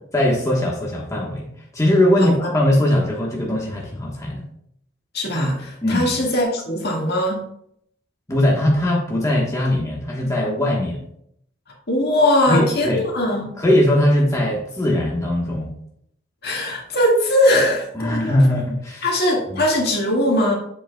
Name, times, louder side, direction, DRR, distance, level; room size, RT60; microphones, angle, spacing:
voice 1, 0.1-1.5 1.7-4.4 5.8-6.1 8.3-11.0 12.5-13.0 13.6-15.7 17.9-19.0 19.5-19.6, left 1 dB, 15° left, -3 dB, 1.2 m, -20 dB
voice 2, 2.2-2.5 5.1-7.4 11.9-13.6 16.4-18.3 19.0-20.5, left 1 dB, 60° left, -1 dB, 1.8 m, -20 dB
7.6 x 7.6 x 2.3 m, 0.71 s
head